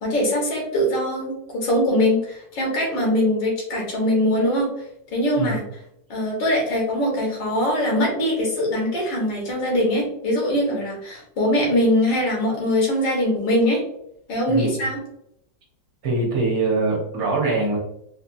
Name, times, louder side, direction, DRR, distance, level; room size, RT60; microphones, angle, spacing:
voice 1, 0.0-4.7 5.1-5.6 6.1-13.8 14.3-15.0, equal, 80° left, -1 dB, 2.1 m, -22 dB
voice 2, 16.0-17.8, right 3 dB, 55° right, -2 dB, 1.4 m, -23 dB
4.3 x 2.8 x 2.5 m, 0.75 s
omnidirectional pair, 2.0 m